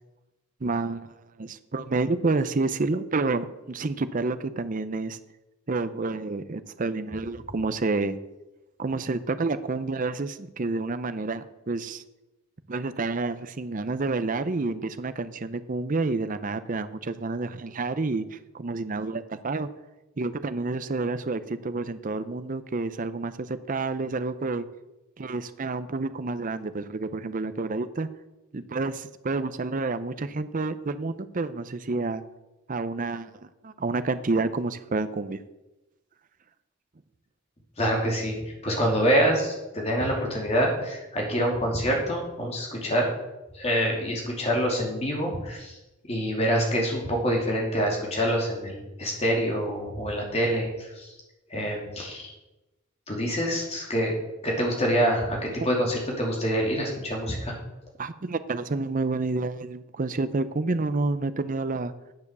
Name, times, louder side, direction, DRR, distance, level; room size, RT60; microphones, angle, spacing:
voice 1, 0.6-5.2 5.7-8.2 8.8-12.0 12.7-19.7 20.2-24.7 25.2-28.1 28.5-32.2 32.7-35.4 58.0-61.9, right 3 dB, 40° right, 12 dB, 0.6 m, -29 dB
voice 2, 37.8-38.4 38.6-43.1 43.5-45.7 46.1-51.1 51.5-52.3 53.1-54.1 54.4-57.5, equal, 30° left, -1 dB, 2.7 m, -26 dB
9.7 x 7.0 x 6.7 m, 1.0 s
head